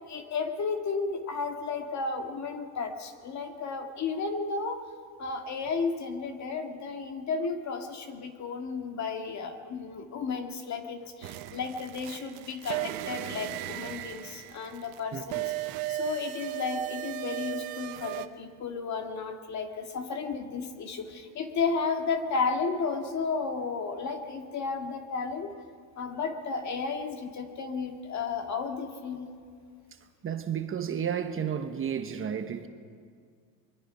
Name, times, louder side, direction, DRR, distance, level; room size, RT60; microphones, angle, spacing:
voice 1, 0.0-4.8 5.2-25.5 26.0-29.3, left 4 dB, 40° left, 2.0 m, -33 dB
sound 1, 11.2-18.3, right 16 dB, 85° right, 1.1 m, -36 dB
voice 2, 30.2-32.7, right 8 dB, 30° right, 1.1 m, -32 dB
23.5 x 23.0 x 5.5 m
cardioid pair, 125°, 41 cm